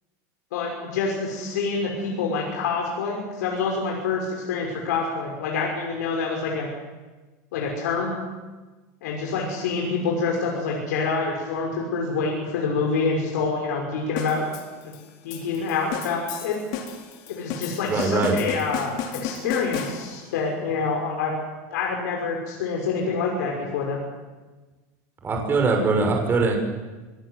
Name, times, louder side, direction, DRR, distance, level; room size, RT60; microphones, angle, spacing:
voice 1, 0.5-6.7 7.5-8.2 9.0-14.4 14.8-14.9 15.2-16.6 17.3-21.3 21.7-24.0, left 4 dB, 90° left, 0 dB, 5.9 m, -27 dB
sound 1, 14.2-20.4, left 7 dB, 60° left, 4.3 m, -34 dB
voice 2, 17.9-18.4 25.2-26.6, right 4 dB, 25° right, 2 dB, 6.3 m, -21 dB
24.5 x 20.0 x 8.1 m, 1.3 s
supercardioid pair, 130°, 9 cm